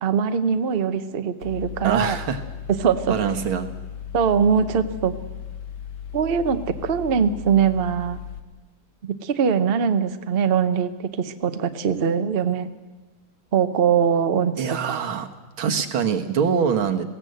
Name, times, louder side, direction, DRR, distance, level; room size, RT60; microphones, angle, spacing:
voice 1, 0.0-2.2 2.7-3.2 4.1-5.1 6.1-8.2 9.0-10.9 11.2-12.7 13.5-15.0, right 7 dB, 45° right, 9 dB, 0.8 m, -22 dB
Mechanical fan, 1.4-8.4, left 8 dB, 60° left, 1.8 m, -36 dB
voice 2, 1.8-2.4 3.1-3.7 14.6-15.3 15.6-17.0, right 7 dB, 90° right, 5 dB, 2.2 m, -24 dB
21.0 x 16.5 x 7.9 m, 1.2 s
omnidirectional pair, 2.2 m